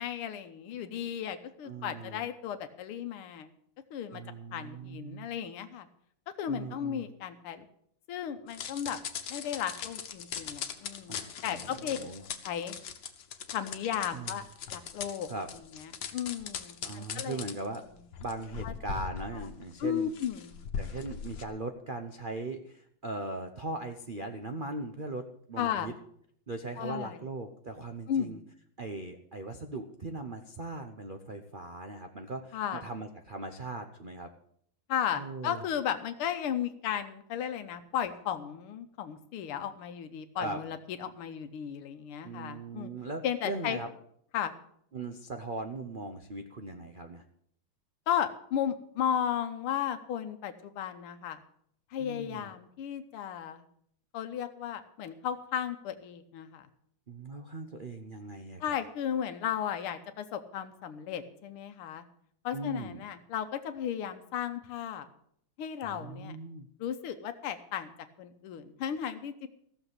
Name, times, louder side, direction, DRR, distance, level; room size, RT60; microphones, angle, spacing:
voice 1, 0.0-3.5 3.9-4.2 4.5-5.9 6.4-7.7 8.1-9.0 9.3-12.0 12.4-12.8 13.5-14.4 14.7-15.3 15.7-17.4 18.6-18.7 19.8-20.6 25.6-25.9 26.8-27.2 28.1-28.4 32.5-32.8 34.9-42.9 43.2-43.8 44.3-44.5 48.1-51.4 51.9-53.6 54.1-56.7 58.6-62.1 62.4-65.1 65.6-66.4 66.8-67.9 68.2-69.5, left 9 dB, 85° left, 8 dB, 1.9 m, -35 dB
voice 2, 1.6-2.2 4.1-5.3 6.5-7.0 11.1-12.2 14.1-14.4 15.3-15.5 16.8-17.8 18.2-20.1 20.8-25.9 26.5-28.4 28.8-34.3 35.2-35.6 40.4-40.6 42.2-43.9 44.9-47.2 52.0-52.5 57.1-58.7 62.5-63.0 65.8-66.7, right 2 dB, 80° right, 6 dB, 0.4 m, -39 dB
sound 1, 8.5-21.5, left 7 dB, 65° left, 1.7 m, -40 dB
15.0 x 7.0 x 8.1 m, 0.67 s
omnidirectional pair, 2.4 m